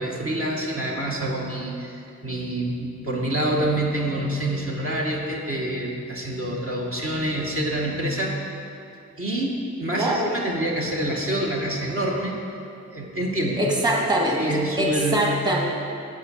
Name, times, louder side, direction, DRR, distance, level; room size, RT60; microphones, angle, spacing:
voice 1, 0.0-8.5 9.2-12.3 12.9-13.6 14.4-15.3, right 1 dB, 45° right, -3 dB, 1.7 m, -27 dB
voice 2, 10.0-10.3 13.6-14.4 14.8-15.6, right 1 dB, 15° right, -1 dB, 1.8 m, -23 dB
9.3 x 8.5 x 6.5 m, 2.7 s
cardioid pair, 65°, 31 cm